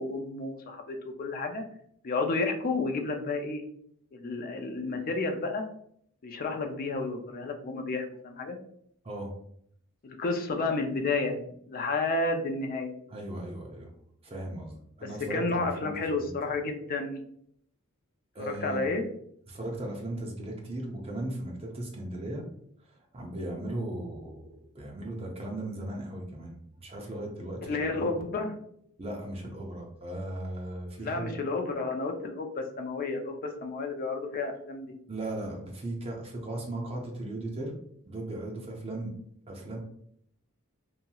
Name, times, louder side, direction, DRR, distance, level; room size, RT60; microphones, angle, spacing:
voice 1, 0.0-1.6 2.0-3.6 4.1-5.6 6.2-8.6 10.0-11.4 11.7-12.9 15.3-17.2 18.5-19.0 27.6-28.5 31.0-34.9, left 3 dB, 40° left, 4 dB, 0.4 m, -31 dB
voice 2, 9.0-9.4 13.1-13.9 14.2-16.3 18.3-18.9 19.5-22.5 23.1-28.2 29.0-31.4 35.1-37.8 38.1-39.1 39.5-39.8, right 1 dB, 25° right, 0 dB, 0.6 m, -37 dB
2.9 x 2.7 x 2.3 m, 0.68 s
head